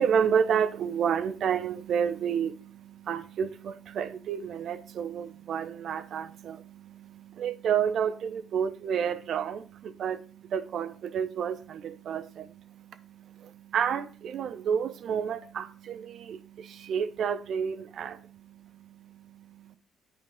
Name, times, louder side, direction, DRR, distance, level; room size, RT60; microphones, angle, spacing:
voice 1, 0.0-19.8, right 7 dB, 60° right, 0.9 m, -30 dB
10.5 x 5.4 x 3.6 m
cardioid pair, 110°, 0 cm